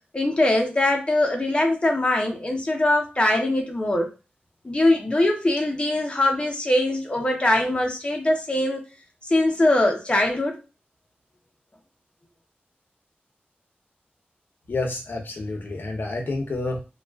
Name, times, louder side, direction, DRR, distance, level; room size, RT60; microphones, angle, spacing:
voice 1, 0.1-4.1 4.6-8.8 9.3-10.6, left 1 dB, 30° left, 1 dB, 0.7 m, -22 dB
voice 2, 14.7-16.8, left 2 dB, 65° left, 3 dB, 0.6 m, -29 dB
2.3 x 2.3 x 2.2 m, 0.30 s
wide cardioid pair, 80°, 4 cm